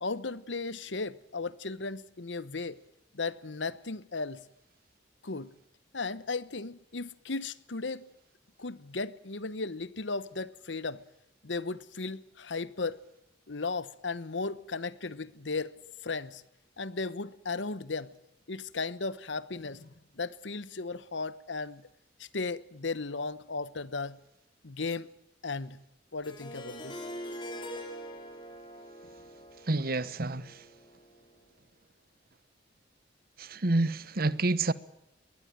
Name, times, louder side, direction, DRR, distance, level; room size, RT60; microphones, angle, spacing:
voice 1, 0.0-2.8 3.1-4.4 5.2-5.5 5.9-8.1 8.6-11.0 11.4-13.0 13.5-15.7 16.0-16.4 16.8-18.1 18.5-19.9 20.1-21.9 22.2-24.2 24.6-25.1 25.4-25.8 26.1-27.0, left 3 dB, 70° left, 1.1 m, -36 dB
Harp, 26.2-31.2, equal, 25° left, 3.9 m, -43 dB
voice 2, 29.7-30.6 33.4-34.7, right 2 dB, 55° right, 1.1 m, -28 dB
22.5 x 20.0 x 9.0 m
head